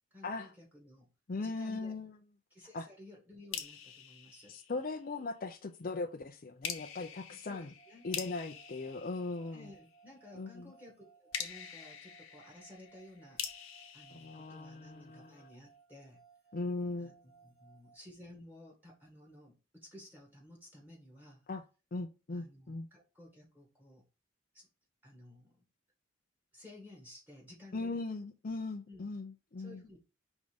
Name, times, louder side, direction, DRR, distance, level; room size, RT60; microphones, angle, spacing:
voice 1, 0.1-1.1 1.4-1.9 2.5-4.5 7.3-8.0 9.5-13.6 13.9-16.2 17.0-21.5 22.3-24.0 24.5-24.7 25.0-25.6 26.5-28.0 28.9-29.1 29.6-30.0, left 1 dB, 10° right, 1.7 m, -55 dB
voice 2, 1.3-2.1 2.7-2.9 4.5-7.7 8.0-9.7 10.3-10.7 14.1-15.5 16.5-17.1 21.5-21.6 21.9-22.9 27.7-29.8, left 3 dB, 40° left, 0.5 m, -39 dB
sound 1, 3.5-5.2 6.6-10.0 11.3-15.2, left 8 dB, 85° left, 1.0 m, -45 dB
sound 2, 7.7-18.0, right 5 dB, 50° right, 2.1 m, -63 dB
5.2 x 3.6 x 5.0 m
head